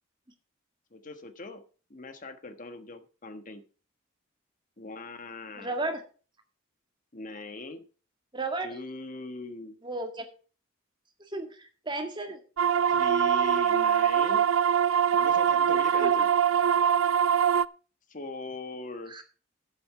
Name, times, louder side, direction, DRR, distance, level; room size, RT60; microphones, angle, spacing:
voice 1, 0.9-1.6 1.9-3.6 4.8-5.8 7.1-7.8 8.6-9.8 12.9-14.5 15.2-16.3 18.1-19.2, left 3 dB, 40° left, 9 dB, 1.3 m, -40 dB
voice 2, 5.6-6.0 8.3-8.7 9.8-10.3 11.3-12.4 15.9-16.3 19.1-19.2, right 2 dB, 25° right, 5 dB, 1.7 m, -34 dB
sound 1, 12.6-17.6, right 8 dB, 75° right, 0.4 m, -23 dB
11.0 x 8.0 x 4.6 m, 0.37 s
head